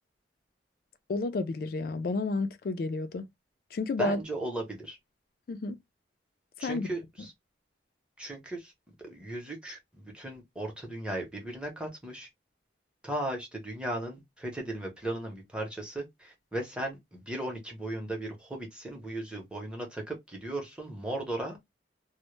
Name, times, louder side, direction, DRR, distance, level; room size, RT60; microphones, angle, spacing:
voice 1, 1.1-3.3 3.7-4.2 5.5-5.8 6.6-6.9, left 3 dB, 50° left, 0.3 m, -31 dB
voice 2, 4.0-5.0 6.6-7.3 8.2-8.7 9.0-12.3 13.0-21.6, right 1 dB, 5° right, 0.6 m, -36 dB
2.0 x 2.0 x 3.0 m
head